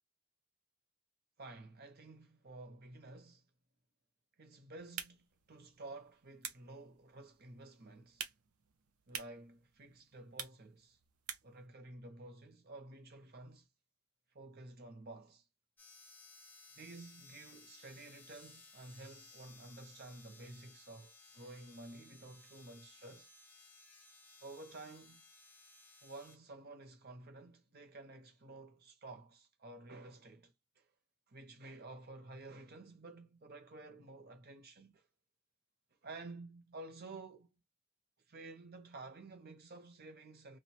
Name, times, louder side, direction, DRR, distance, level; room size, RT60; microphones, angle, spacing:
voice 1, 1.4-3.5 4.4-8.3 9.1-11.0 11.4-13.7 14.3-15.4 16.8-23.3 24.4-25.3 26.0-30.9 31.3-35.0 36.0-37.5 38.3-40.6, right 2 dB, 45° right, 0.7 m, -52 dB
sound 1, 4.8-11.7, right 8 dB, 80° right, 0.6 m, -50 dB
sound 2, 15.8-26.4, left 3 dB, 10° left, 0.4 m, -60 dB
2.5 x 2.2 x 2.8 m
head